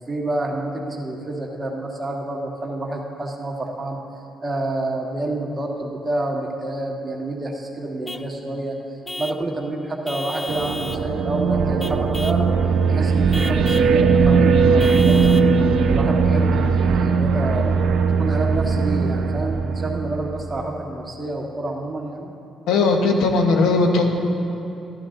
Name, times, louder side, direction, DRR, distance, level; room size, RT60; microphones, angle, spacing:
voice 1, 0.1-4.0 4.4-8.8 9.2-12.5 12.9-15.4 15.9-17.7 18.2-22.3, right 2 dB, 25° right, -1 dB, 1.7 m, -28 dB
Vehicle horn car horn honking / Truck, 8.1-8.3 9.1-9.5 10.1-11.1 11.8-12.5 13.3-13.9 14.8-15.5, left 1 dB, 15° left, 0.5 m, -33 dB
sound 1, 10.5-20.7, right 5 dB, 75° right, 0.7 m, -19 dB
voice 2, 22.7-24.0, left 3 dB, 90° left, 3 dB, 1.2 m, -18 dB
14.0 x 11.5 x 3.9 m, 2.8 s
cardioid pair, 90°, 0 cm